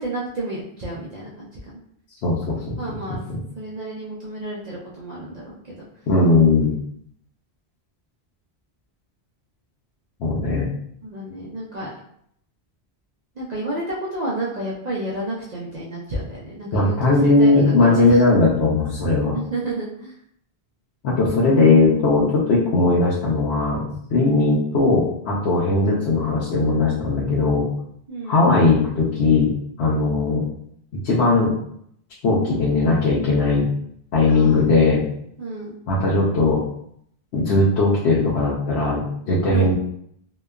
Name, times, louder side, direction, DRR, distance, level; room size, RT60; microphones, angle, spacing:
voice 1, 0.0-1.8 2.8-3.2 3.5-5.9 11.0-11.9 13.4-18.2 19.3-20.1 21.4-21.7 28.1-28.4 34.3-34.7 35.4-35.8 39.5-39.7, right 2 dB, 55° right, -5 dB, 0.5 m, -31 dB
voice 2, 2.2-2.8 3.3-3.4 6.1-6.7 10.2-10.7 16.7-19.3 21.0-23.8 24.1-27.7 28.2-29.5 29.8-30.4 31.0-31.5 32.2-33.7 34.1-35.0 35.9-36.6 37.3-39.7, left 3 dB, 80° left, -6 dB, 0.9 m, -18 dB
2.9 x 2.2 x 2.3 m, 0.68 s
omnidirectional pair, 1.1 m